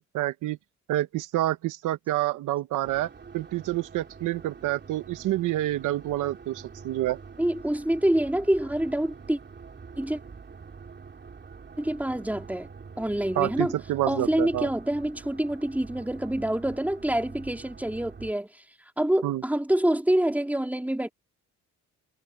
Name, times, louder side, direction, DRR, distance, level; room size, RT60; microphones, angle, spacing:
voice 1, 0.1-0.6 0.9-7.2 13.4-14.7 19.2-19.4, right 15 dB, 85° right, 1.0 m, -28 dB
sound 1, 2.8-18.3, right 5 dB, 35° right, 3.5 m, -46 dB
voice 2, 7.4-9.4 10.0-10.2 11.8-12.7 13.0-13.7 14.1-18.5 19.0-21.1, right 1 dB, 5° right, 3.3 m, -26 dB
cardioid pair, 90°, 30 cm